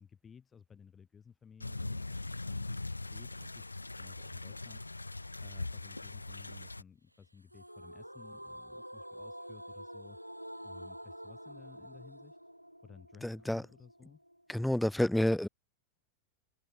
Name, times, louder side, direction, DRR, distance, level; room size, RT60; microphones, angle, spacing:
voice 1, 0.0-2.8 3.1-3.6 4.0-5.1 5.4-10.2 10.6-12.4 12.8-14.2, left 6 dB, 20° left, 6.5 m, -56 dB
sound 1, 1.6-6.8, left 2 dB, 80° left, 0.9 m, -41 dB
sound 2, 7.5-14.5, equal, 90° right, 1.8 m, -48 dB
voice 2, 13.2-13.6 14.5-15.5, left 1 dB, ahead, 0.5 m, -29 dB
open air
figure-of-eight pair, 90°, 0 cm